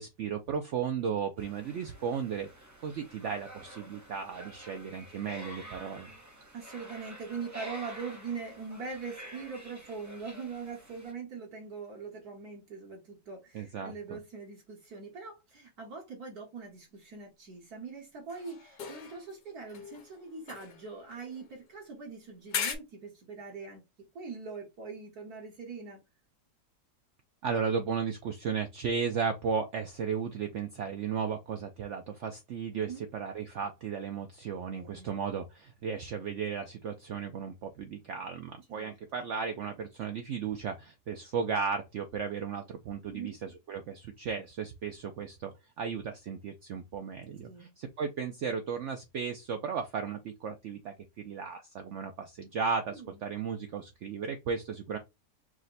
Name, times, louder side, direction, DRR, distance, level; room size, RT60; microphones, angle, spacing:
voice 1, 0.0-2.5 2.8-6.1 13.5-14.2 27.4-55.0, right 6 dB, 85° right, 0.6 m, -35 dB
sound 1, 1.4-11.1, right 1 dB, 20° right, 0.5 m, -49 dB
voice 2, 6.5-23.8 24.2-26.0 32.7-33.0 34.7-35.1 38.7-39.0 43.1-43.3 47.4-47.7 52.9-53.2, right 5 dB, 60° right, 1.7 m, -42 dB
sound 2, 18.3-19.4 19.7-21.8 22.5-22.8, left 7 dB, 75° left, 1.5 m, -39 dB
4.9 x 2.1 x 3.9 m
omnidirectional pair, 1.8 m